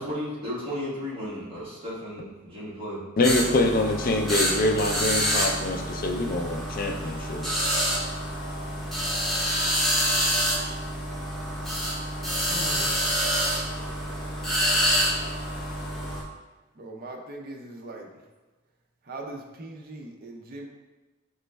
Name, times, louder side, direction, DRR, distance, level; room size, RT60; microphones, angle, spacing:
voice 1, 0.0-3.0 12.5-12.8, equal, 25° right, -9 dB, 1.3 m, -34 dB
voice 2, 3.2-7.5, left 2 dB, 40° left, 3 dB, 0.4 m, -25 dB
sound 1, 3.2-16.2, equal, ahead, 0.6 m, -27 dB
voice 3, 16.8-18.1 19.1-20.7, right 2 dB, 45° right, 1 dB, 0.5 m, -40 dB
5.2 x 3.1 x 2.2 m, 1.2 s
head